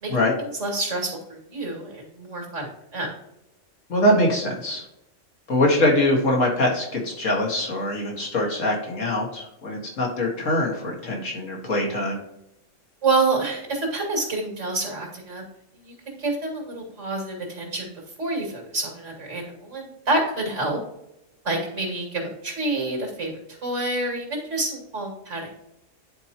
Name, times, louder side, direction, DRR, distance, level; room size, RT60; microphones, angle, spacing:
voice 1, 0.4-3.1 13.0-15.4 15.8-17.9 18.2-20.8 21.4-25.5, right 2 dB, 75° right, 0 dB, 2.7 m, -28 dB
voice 2, 3.9-4.8 5.5-12.2, left 1 dB, 80° left, -1 dB, 2.2 m, -23 dB
10.0 x 4.5 x 2.9 m, 0.84 s
omnidirectional pair, 1.3 m